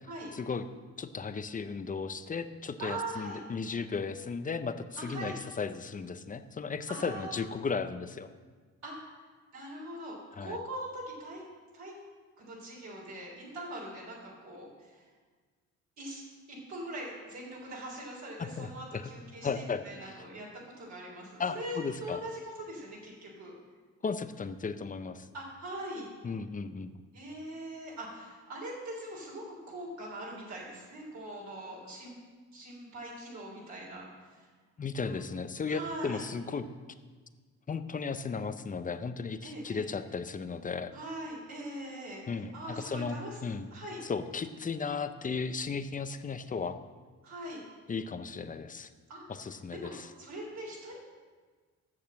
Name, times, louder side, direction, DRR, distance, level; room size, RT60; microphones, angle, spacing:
voice 1, 0.3-0.6 1.0-8.3 10.4-10.6 18.4-19.1 19.4-20.2 21.4-22.2 24.0-25.3 26.2-26.9 34.8-36.7 37.7-40.9 42.3-43.7 44.0-46.8 47.9-48.9 49.3-50.1, left 5 dB, 25° left, 10 dB, 0.7 m, -35 dB
voice 2, 2.8-3.4 5.0-5.4 6.9-7.4 8.8-9.0 9.5-11.4 11.7-12.0 12.4-15.0 16.0-16.2 16.5-23.5 25.3-26.1 27.1-32.2 32.5-34.5 35.0-35.1 35.7-36.2 39.4-39.8 40.9-42.2 42.5-43.4 43.7-44.0 47.2-47.6 49.1-49.2 49.7-51.0, right 1 dB, 65° right, -3 dB, 3.4 m, -42 dB
8.4 x 6.7 x 7.6 m, 1.5 s
cardioid pair, 90°, 30 cm